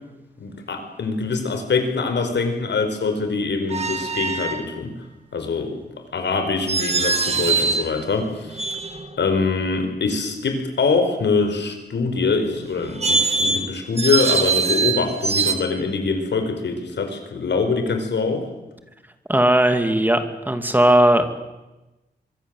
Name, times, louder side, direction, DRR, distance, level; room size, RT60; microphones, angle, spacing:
voice 1, 0.4-4.9 5.3-5.8 6.1-8.6 9.2-18.4, left 4 dB, 85° left, 6 dB, 4.8 m, -23 dB
sound 1, 3.7-4.6 6.7-7.9 8.5-9.2 12.8-15.5, right 4 dB, 35° right, 2.4 m, -22 dB
voice 2, 19.3-21.3, right 1 dB, 10° right, 8 dB, 2.5 m, -17 dB
24.5 x 24.0 x 7.8 m, 1.0 s
wide cardioid pair, 125°, 18 cm